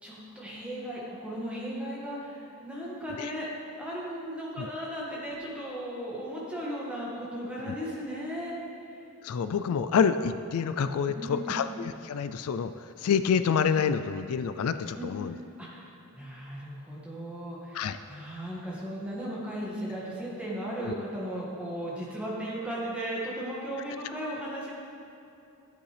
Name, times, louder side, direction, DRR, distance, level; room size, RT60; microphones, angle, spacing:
voice 1, 0.0-3.5 3.8-8.5 11.1-11.6 15.0-15.1 15.6-15.9 16.1-24.7, equal, 5° right, -6 dB, 1.8 m, -36 dB
voice 2, 9.2-15.4 17.7-18.0 20.8-20.9, left 6 dB, 80° left, 11 dB, 0.3 m, -28 dB
13.0 x 8.3 x 3.3 m, 2.9 s
head